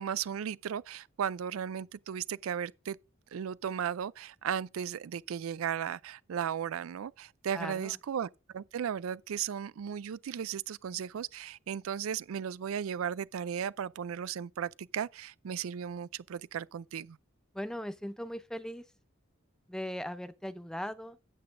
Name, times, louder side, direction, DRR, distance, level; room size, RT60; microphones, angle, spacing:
voice 1, 0.0-3.0 3.3-17.2, right 8 dB, 85° right, 0.4 m, -36 dB
voice 2, 7.5-8.0 17.5-18.8 19.7-21.2, equal, 5° left, 0.5 m, -39 dB
12.5 x 8.6 x 2.5 m
head